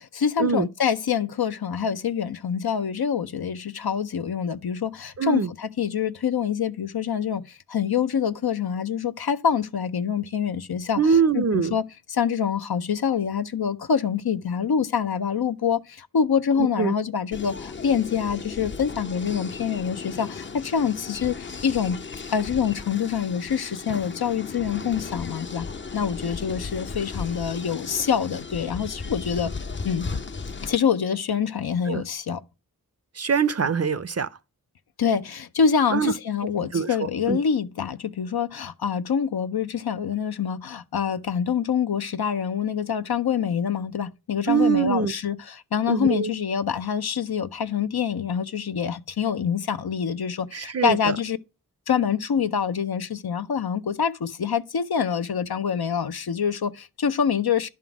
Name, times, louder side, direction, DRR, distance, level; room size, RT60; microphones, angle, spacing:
voice 1, 0.0-22.0 22.3-25.7 25.9-29.5 29.8-30.1 30.6-32.4 35.0-51.4 51.9-57.7, left 7 dB, 80° left, 0.6 m, -26 dB
voice 2, 5.2-5.5 11.0-11.8 16.6-16.9 31.9-32.0 33.2-34.3 35.9-36.1 36.7-36.9 37.3-37.4 44.5-45.1 45.9-46.3 50.5-51.1, right 6 dB, 45° right, 0.5 m, -23 dB
sound 1, 17.3-30.8, left 4 dB, 30° left, 0.5 m, -36 dB
11.0 x 3.7 x 6.0 m
wide cardioid pair, 40°, 37 cm